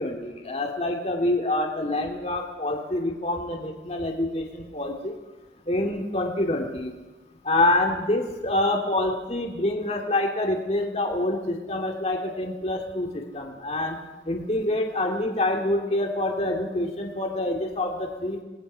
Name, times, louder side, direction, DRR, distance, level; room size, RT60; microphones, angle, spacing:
voice 1, 0.0-5.2 5.7-7.0 7.4-14.0 14.3-18.4, left 1 dB, 35° left, 1 dB, 2.5 m, -26 dB
28.0 x 19.5 x 5.6 m, 1.2 s
head